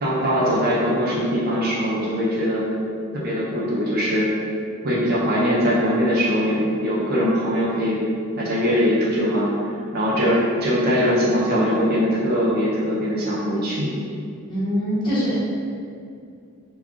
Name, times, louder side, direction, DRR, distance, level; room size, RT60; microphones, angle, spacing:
voice 1, 0.0-2.6 3.1-4.3 4.8-8.0 8.4-9.5 9.9-13.9, equal, 45° right, -6 dB, 0.5 m, -21 dB
voice 2, 14.5-15.4, equal, 20° left, -11 dB, 0.9 m, -23 dB
2.3 x 2.2 x 3.6 m, 2.4 s
head